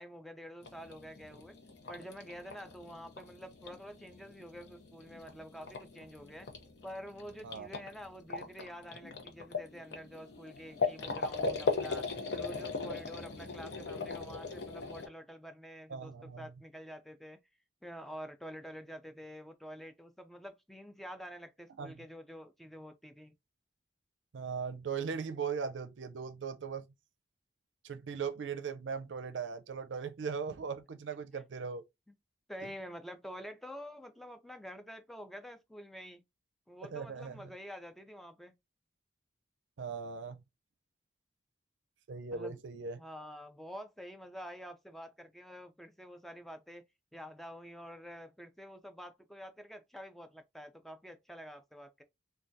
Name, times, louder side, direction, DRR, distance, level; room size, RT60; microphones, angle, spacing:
voice 1, 0.0-1.6 1.9-6.5 6.8-17.4 17.8-23.3 31.3-31.4 32.5-36.2 36.7-38.5 42.3-42.6 43.0-46.8 47.1-52.0, equal, ahead, 0.3 m, -48 dB
sound 1, 0.6-15.1, left 4 dB, 65° left, 0.6 m, -39 dB
voice 2, 15.9-16.5 21.8-21.9 24.3-26.9 27.8-31.8 36.8-37.4 39.8-40.4 42.1-43.0, right 6 dB, 90° right, 0.4 m, -39 dB
3.3 x 2.2 x 2.6 m
head